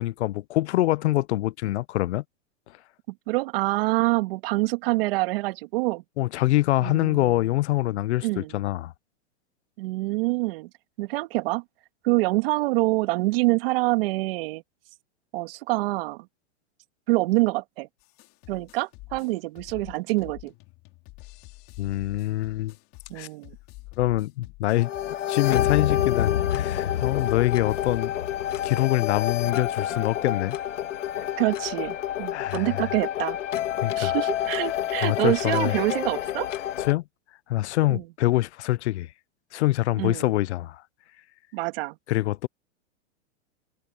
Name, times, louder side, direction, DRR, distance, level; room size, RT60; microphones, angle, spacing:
voice 1, 0.0-2.2 6.2-8.9 21.8-22.7 23.1-23.3 24.0-24.9 25.3-28.1 28.6-30.6 32.3-32.8 33.8-34.2 35.0-35.8 36.8-37.0 37.5-39.1 39.5-40.8 42.1-42.5, left 16 dB, 65° left, 0.8 m, -25 dB
voice 2, 3.3-6.0 6.8-7.4 8.2-8.6 9.8-10.7 11.0-11.6 12.0-14.6 15.3-16.3 17.1-17.9 18.5-20.5 23.1-23.6 31.4-33.4 34.0-36.5 37.9-38.0 40.0-40.2 41.5-42.0, right 22 dB, 50° right, 2.2 m, -26 dB
sound 1, 18.0-28.0, left 22 dB, 35° left, 3.5 m, -47 dB
sound 2, 24.8-36.9, left 11 dB, 85° left, 2.6 m, -28 dB
supercardioid pair, 150°, 36 cm